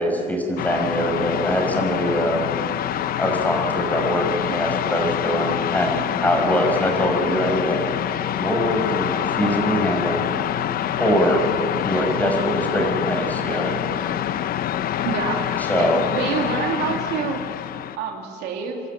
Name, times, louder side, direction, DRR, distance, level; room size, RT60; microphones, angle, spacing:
voice 1, 0.0-2.4 3.2-7.8 8.4-10.2 11.0-11.4 11.8-13.8 15.7-16.0, equal, 10° left, 2 dB, 5.5 m, -23 dB
sound 1, 0.6-18.0, left 11 dB, 60° left, 0.7 m, -26 dB
voice 2, 15.0-15.5 15.8-17.4 17.9-18.8, right 6 dB, 85° right, 1 dB, 3.0 m, -27 dB
26.0 x 13.0 x 9.0 m, 2.4 s
cardioid pair, 110°, 17 cm